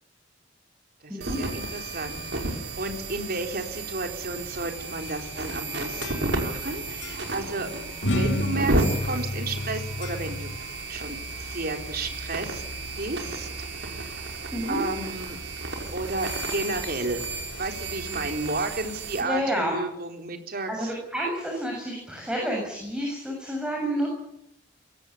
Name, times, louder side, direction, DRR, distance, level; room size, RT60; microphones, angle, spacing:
voice 1, 1.0-7.7 8.1-12.6 13.0-13.5 13.8-14.2 14.7-15.4 15.9-17.2 17.6-20.7, right 2 dB, 55° right, 4 dB, 4.2 m, -33 dB
sound 1, 1.2-19.2, right 2 dB, 75° right, 5.7 m, -33 dB
sound 2, 5.5-6.7 7.0-7.2 8.0-10.6, left 1 dB, 80° left, 2.2 m, -30 dB
voice 2, 19.2-19.8 20.7-24.1, equal, 5° right, -1 dB, 7.4 m, -29 dB
23.0 x 18.0 x 9.8 m, 0.77 s
head